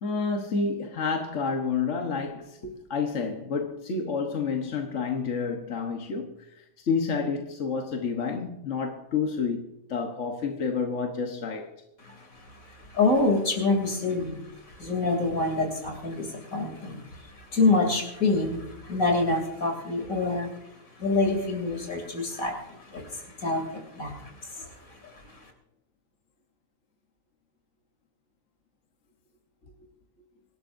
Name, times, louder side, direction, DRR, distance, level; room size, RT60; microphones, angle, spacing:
voice 1, 0.0-11.7, left 5 dB, 60° left, 1.5 m, -29 dB
voice 2, 12.0-20.5 21.0-25.5, left 3 dB, 85° left, 3.4 m, -27 dB
25.5 x 12.0 x 2.6 m
omnidirectional pair, 1.4 m